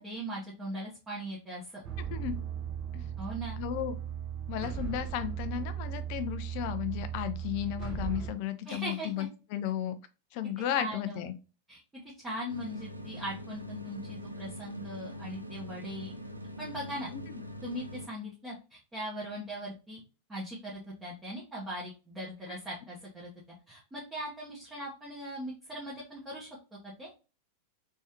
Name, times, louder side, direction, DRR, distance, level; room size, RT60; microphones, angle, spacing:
voice 1, 0.0-1.8 3.2-3.6 8.6-9.3 10.8-11.3 11.7-11.8 12.2-16.1 16.6-17.1 17.6-20.0 20.3-23.3 23.7-26.5 26.8-27.1, equal, 15° right, -7 dB, 1.2 m, -40 dB
sound 1, 1.8-8.3, right 9 dB, 35° right, 1.1 m, -37 dB
voice 2, 3.6-4.0 4.5-10.0 10.3-11.3 22.5-22.6, left 11 dB, 45° left, 10 dB, 0.5 m, -34 dB
sound 2, 12.5-18.1, equal, 85° right, 0.4 m, -43 dB
3.4 x 3.2 x 2.9 m, 0.31 s
figure-of-eight pair, 90°, 0 cm